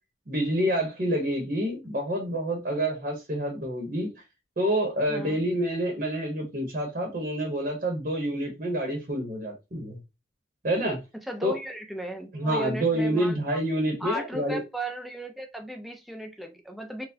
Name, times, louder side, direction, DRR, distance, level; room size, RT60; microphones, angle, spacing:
voice 1, 0.3-4.1 4.6-10.0 10.6-11.0 11.4-11.6 12.3-14.6, right 1 dB, 50° right, 0.9 m, -28 dB
voice 2, 5.1-5.4 11.3-13.4 14.0-17.1, right 1 dB, ahead, 0.6 m, -36 dB
4.3 x 2.2 x 2.7 m
head